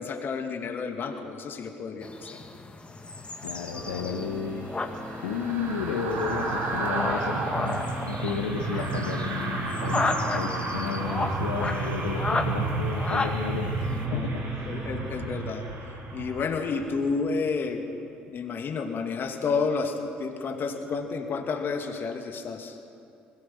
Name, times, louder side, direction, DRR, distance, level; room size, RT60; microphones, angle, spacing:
voice 1, 0.0-2.4 14.1-14.3 14.6-15.7 16.1-17.9 18.3-22.8, left 4 dB, 45° left, 5 dB, 2.3 m, -30 dB
sound 1, 2.0-14.0, left 3 dB, 25° left, 2.0 m, -34 dB
voice 2, 3.4-4.7 5.2-14.7, left 6 dB, 80° left, 1 dB, 1.2 m, -33 dB
sound 2, 3.7-15.1, equal, 5° right, 2.7 m, -41 dB
sound 3, 3.7-17.1 17.4-17.6, right 3 dB, 65° right, 6.7 m, -32 dB
21.0 x 17.5 x 7.8 m, 2.5 s
hypercardioid pair, 55°, 5 cm